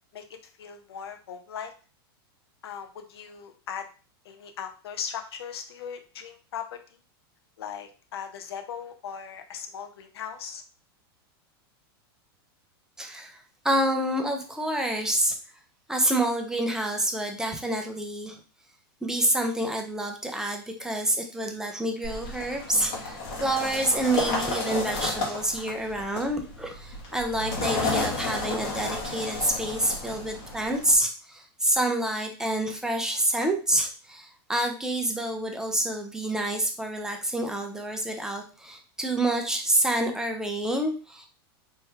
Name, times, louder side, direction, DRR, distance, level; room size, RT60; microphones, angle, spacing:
voice 1, 0.1-1.7 2.6-3.9 4.2-6.8 7.6-10.6, left 7 dB, 80° left, 7 dB, 0.8 m, -38 dB
voice 2, 13.0-15.3 15.9-18.4 19.0-41.3, right 1 dB, 5° right, 3 dB, 0.8 m, -28 dB
sound 1, 22.0-30.9, left 3 dB, 45° left, 2.0 m, -32 dB
4.1 x 3.3 x 3.6 m, 0.36 s
hypercardioid pair, 120°, 13 cm